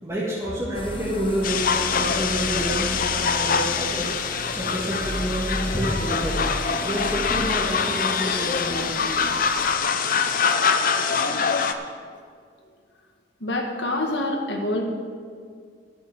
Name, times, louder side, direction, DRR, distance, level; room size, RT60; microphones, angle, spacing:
voice 1, 0.0-6.4 6.8-9.1, right 1 dB, 15° right, -7 dB, 1.9 m, -28 dB
sound 1, 0.7-9.8, left 1 dB, 30° left, 1.1 m, -38 dB
sound 2, 1.4-11.7, left 6 dB, 55° left, 0.7 m, -24 dB
sound 3, 5.0-8.6, equal, 10° left, 0.6 m, -34 dB
voice 2, 13.4-14.8, left 1 dB, 90° left, 1 dB, 1.7 m, -26 dB
11.0 x 7.8 x 7.3 m, 2.1 s
head